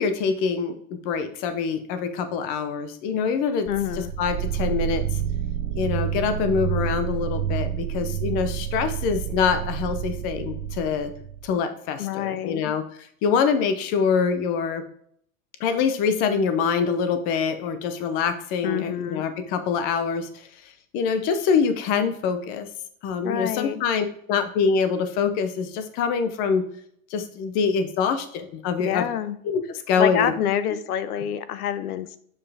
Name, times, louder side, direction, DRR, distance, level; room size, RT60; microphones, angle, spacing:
voice 1, 0.0-3.7 4.0-5.0 5.7-11.1 11.4-12.8 13.2-14.8 15.6-20.3 20.9-22.7 23.0-26.7 27.1-29.1 29.4-29.6 29.9-30.3, left 6 dB, 20° left, 9 dB, 0.5 m, -25 dB
voice 2, 3.7-4.1 12.0-12.7 18.6-19.2 23.2-23.8 28.8-29.4 30.0-32.2, left 10 dB, 85° left, 14 dB, 0.9 m, -27 dB
sound 1, 3.7-11.5, right 10 dB, 35° right, 1.0 m, -29 dB
7.0 x 5.5 x 3.3 m, 0.66 s
supercardioid pair, 155°, 44 cm